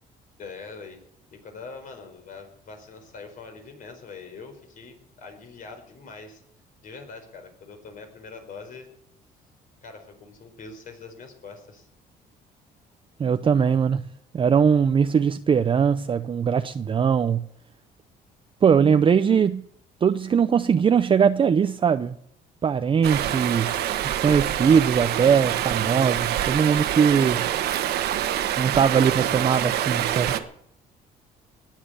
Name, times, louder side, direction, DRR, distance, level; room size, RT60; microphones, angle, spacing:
voice 1, 0.4-1.0 1.3-6.4 6.8-8.9 9.8-11.9, left 4 dB, 55° left, 4.7 m, -43 dB
voice 2, 13.2-14.0 14.3-17.5 18.6-19.6 20.0-22.1 22.6-27.5 28.6-30.4, right 7 dB, 30° right, 0.6 m, -21 dB
Stream, 23.0-30.4, right 11 dB, 75° right, 1.4 m, -26 dB
19.5 x 7.5 x 8.4 m
cardioid pair, 110°, 17 cm